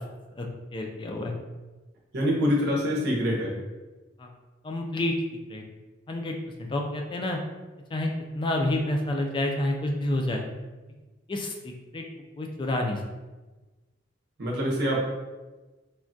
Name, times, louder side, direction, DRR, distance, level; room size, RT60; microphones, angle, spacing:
voice 1, 0.7-1.3 4.2-4.3 4.6-5.1 5.5-5.6 6.1-7.4 7.9-8.1 8.3-10.5 11.3-12.0 12.4-13.0, left 1 dB, 25° left, 2 dB, 0.3 m, -29 dB
voice 2, 2.1-3.6 14.4-15.1, equal, 55° right, -4 dB, 0.7 m, -25 dB
3.3 x 2.2 x 2.5 m, 1.2 s
head